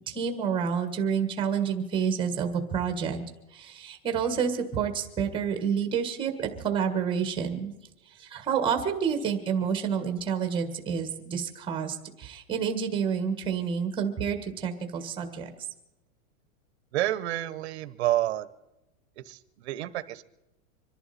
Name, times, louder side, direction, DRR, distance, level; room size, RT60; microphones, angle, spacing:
voice 1, 0.1-3.2 3.5-7.7 8.2-15.5, right 7 dB, 10° right, 6 dB, 1.4 m, -29 dB
voice 2, 16.9-18.5 19.3-20.2, right 14 dB, 50° right, 13 dB, 1.0 m, -29 dB
26.0 x 11.0 x 4.2 m, 0.93 s
supercardioid pair, 170°, 42 cm